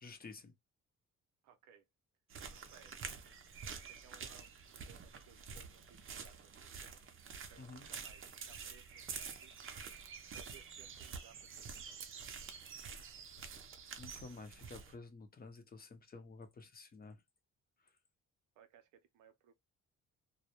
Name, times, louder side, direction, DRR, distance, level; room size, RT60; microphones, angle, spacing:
voice 1, 0.0-0.5 7.6-7.9 14.0-17.2, left 4 dB, 30° left, 0.6 m, -51 dB
voice 2, 1.4-1.9 2.5-3.2 3.9-7.0 7.5-9.7 10.3-12.0 18.6-19.5, right 8 dB, 90° right, 0.6 m, -64 dB
sound 1, 2.3-15.0, right 6 dB, 45° right, 0.5 m, -48 dB
2.2 x 2.0 x 2.8 m
cardioid pair, 90°, 30 cm